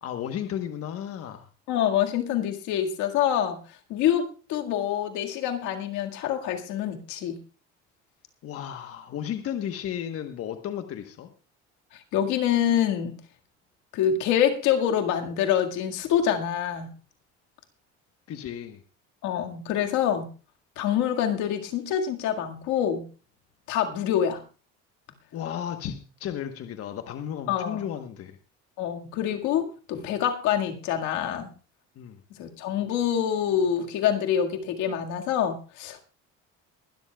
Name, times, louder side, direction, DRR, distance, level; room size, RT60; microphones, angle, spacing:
voice 1, 0.0-1.5 8.4-11.3 18.3-18.8 25.3-28.4 32.0-32.2, left 9 dB, 50° left, 7 dB, 1.1 m, -34 dB
voice 2, 1.7-3.6 3.9-7.4 12.1-13.2 13.9-16.9 19.2-20.3 20.8-23.1 23.7-24.4 27.5-27.8 28.8-31.5 32.4-36.0, left 9 dB, 80° left, 3 dB, 1.9 m, -26 dB
22.0 x 12.5 x 2.3 m, 0.34 s
cardioid pair, 120°, 29 cm